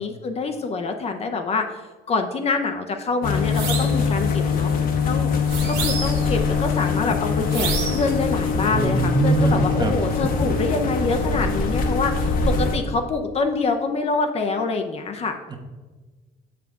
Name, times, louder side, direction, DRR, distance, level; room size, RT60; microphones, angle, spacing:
voice 1, 0.0-1.7 2.1-4.7 5.1-5.3 5.7-15.4, left 4 dB, 40° left, 5 dB, 0.6 m, -25 dB
sound 1, 3.2-12.8, left 5 dB, 60° left, 0.9 m, -23 dB
sound 2, 3.5-4.0 5.5-6.3 7.5-8.1, right 5 dB, 85° right, 1.3 m, -28 dB
Bird vocalization bird call bird song, 5.5-12.7, equal, 5° left, 0.9 m, -31 dB
voice 2, 8.7-10.0 15.5-15.6, right 3 dB, 25° right, 3 dB, 1.0 m, -22 dB
7.1 x 5.7 x 3.6 m, 1.3 s
cardioid pair, 110°, 17 cm